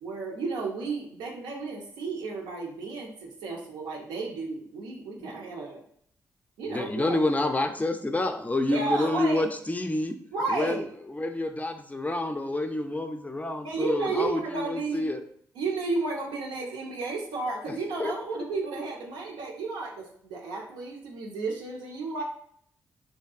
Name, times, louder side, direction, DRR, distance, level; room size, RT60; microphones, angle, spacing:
voice 1, 0.0-5.8 6.6-7.2 8.7-9.4 10.3-10.8 13.6-15.1 15.6-22.2, right 3 dB, 85° right, -1 dB, 0.5 m, -32 dB
voice 2, 6.7-10.1 10.5-10.8 11.1-15.2 17.7-18.1, left 2 dB, 20° left, 7 dB, 0.4 m, -28 dB
2.6 x 2.3 x 2.4 m, 0.64 s
hypercardioid pair, 40°, 8 cm